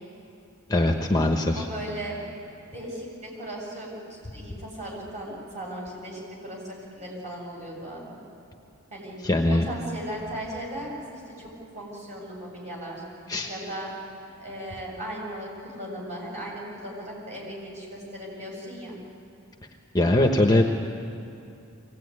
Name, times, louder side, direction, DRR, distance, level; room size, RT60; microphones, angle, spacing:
voice 1, 0.7-1.7 9.2-9.6 13.3-13.5 19.9-20.6, left 1 dB, 15° left, 2 dB, 1.1 m, -21 dB
voice 2, 1.5-2.2 2.7-8.3 8.9-9.2 9.5-11.5 11.7-13.0 13.4-13.9 14.4-19.0, right 1 dB, 30° right, -3 dB, 7.2 m, -37 dB
24.0 x 17.5 x 9.7 m, 2.8 s
head